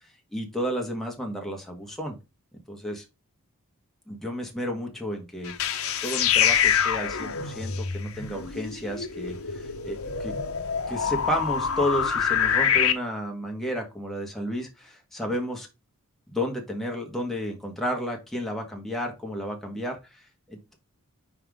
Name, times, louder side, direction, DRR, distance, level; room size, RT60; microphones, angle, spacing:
voice 1, 0.3-2.1 2.7-3.0 4.1-5.6 6.0-10.3 10.9-15.7 16.3-20.2 20.5-20.7, equal, ahead, 1 dB, 1.6 m, -32 dB
sound 1, 5.4-12.9, left 8 dB, 65° left, 0.9 m, -26 dB
5.9 x 4.5 x 3.6 m, 0.25 s
head